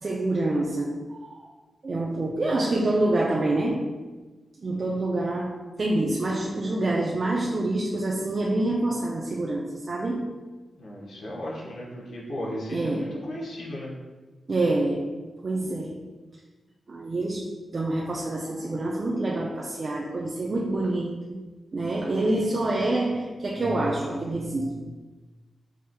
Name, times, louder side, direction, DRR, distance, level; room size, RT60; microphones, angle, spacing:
voice 1, 0.0-1.5 1.8-3.9 4.6-10.3 12.7-13.1 14.5-15.1 15.4-16.0 16.9-17.4 17.7-21.4 21.7-24.8, right 2 dB, 50° right, -3 dB, 0.4 m, -27 dB
voice 2, 10.8-13.9, left 1 dB, 80° left, -4 dB, 1.0 m, -35 dB
4.8 x 2.9 x 2.2 m, 1.3 s
cardioid pair, 75°, 0 cm